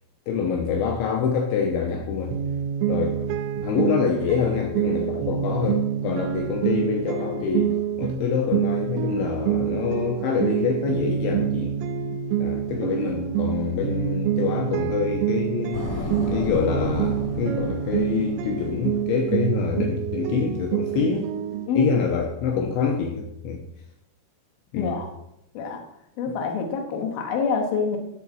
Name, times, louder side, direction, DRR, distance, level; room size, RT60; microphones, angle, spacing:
voice 1, 0.3-2.4 2.9-3.3 3.6-11.8 12.4-15.9 16.3-21.3 21.8-23.6 24.7-24.9, left 6 dB, 80° left, 2 dB, 2.9 m, -26 dB
sound 1, 2.3-21.7, right 9 dB, 85° right, 3.3 m, -27 dB
sound 2, 15.7-19.4, left 2 dB, 35° left, 1.6 m, -34 dB
voice 2, 24.8-25.1 25.5-25.8 26.2-28.0, left 5 dB, 65° left, 2 dB, 2.6 m, -26 dB
11.0 x 7.2 x 4.5 m, 0.82 s
omnidirectional pair, 5.7 m